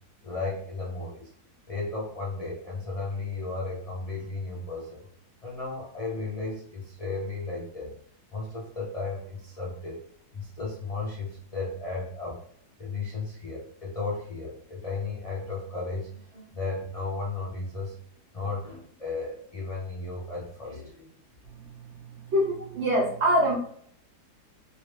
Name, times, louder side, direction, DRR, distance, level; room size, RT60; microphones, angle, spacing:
voice 1, 0.2-1.3 1.7-5.0 5.4-8.0 8.3-10.0 10.3-12.4 12.8-17.9 18.3-21.1, left 3 dB, 55° left, -4 dB, 0.4 m, -34 dB
voice 2, 22.3-23.6, equal, 55° right, -1 dB, 0.9 m, -23 dB
3.2 x 2.9 x 3.2 m, 0.63 s
omnidirectional pair, 1.8 m